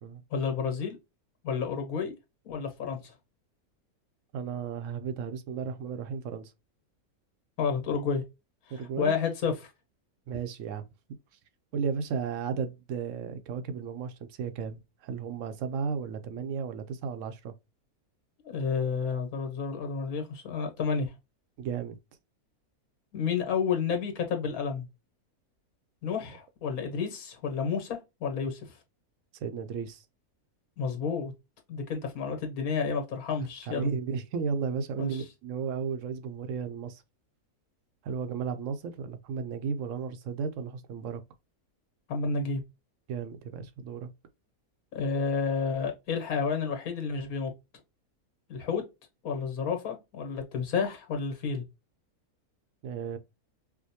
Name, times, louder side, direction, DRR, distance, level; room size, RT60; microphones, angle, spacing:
voice 1, 0.3-1.0 1.4-2.1 2.4-3.1 7.6-8.2 9.0-9.7 18.4-21.1 23.1-24.8 26.0-28.6 30.8-31.3 31.7-33.9 35.0-35.2 42.1-42.6 44.9-47.5 48.5-48.8 49.2-51.6, left 5 dB, 75° left, 1.5 m, -30 dB
voice 2, 4.3-6.5 8.7-9.2 10.3-10.8 11.7-17.5 21.6-22.0 29.4-30.0 33.6-37.0 38.0-41.2 43.1-44.1 52.8-53.2, right 6 dB, 70° right, 0.8 m, -34 dB
4.7 x 2.1 x 2.7 m
omnidirectional pair, 1.6 m